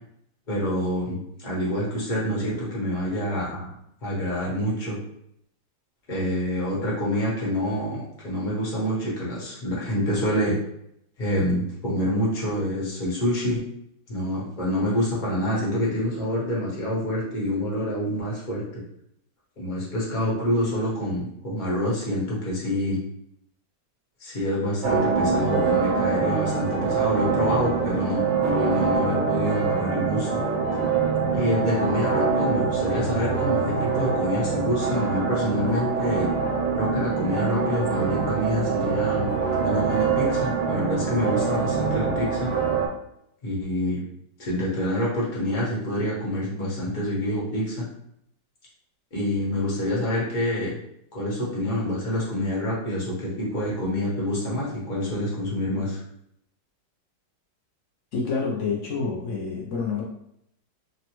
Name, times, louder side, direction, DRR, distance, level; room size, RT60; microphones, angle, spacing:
voice 1, 0.5-3.7 4.0-5.0 6.1-10.6 11.2-13.6 14.1-18.6 19.6-23.0 24.2-30.4 31.3-36.3 36.7-39.3 39.6-42.5 43.4-44.0 44.4-47.8 49.1-50.7 51.1-56.0, equal, 35° left, -6 dB, 0.8 m, -27 dB
sound 1, 24.8-42.9, right 5 dB, 80° right, 1.4 m, -24 dB
voice 2, 58.1-60.0, left 4 dB, 90° left, -3 dB, 0.6 m, -28 dB
3.3 x 2.1 x 2.9 m, 0.75 s
omnidirectional pair, 2.0 m